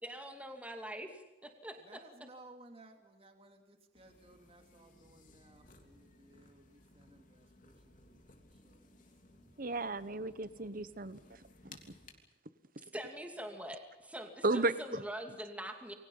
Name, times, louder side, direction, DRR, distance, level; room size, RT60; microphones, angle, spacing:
voice 1, 0.0-2.0 12.9-15.9, right 1 dB, 5° right, 4 dB, 2.6 m, -44 dB
voice 2, 1.8-9.6 10.6-11.1 13.5-13.6, right 2 dB, 30° right, 4 dB, 2.8 m, -60 dB
sound 1, 3.9-12.1, left 3 dB, 45° left, 3.3 m, -61 dB
voice 3, 9.6-11.8 14.4-15.0, right 2 dB, 50° right, 14 dB, 1.2 m, -34 dB
28.5 x 23.5 x 5.7 m, 1.1 s
head